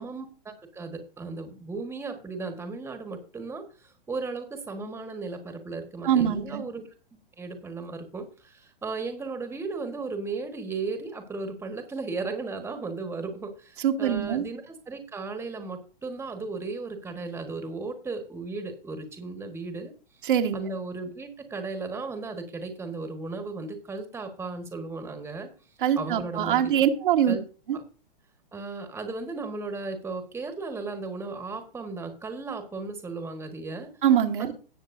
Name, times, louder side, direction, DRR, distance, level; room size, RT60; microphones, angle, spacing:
voice 1, 0.0-6.9 7.4-19.9 20.5-25.5 26.0-26.8 27.3-27.4 27.7-27.8 28.5-33.9 34.4-34.5, right 3 dB, 10° right, 1.4 m, -35 dB
voice 2, 6.0-6.6 13.8-14.4 20.2-20.6 25.8-27.3 34.0-34.5, right 9 dB, 60° right, 1.5 m, -23 dB
17.5 x 7.2 x 2.6 m
hypercardioid pair, 120°, 29 cm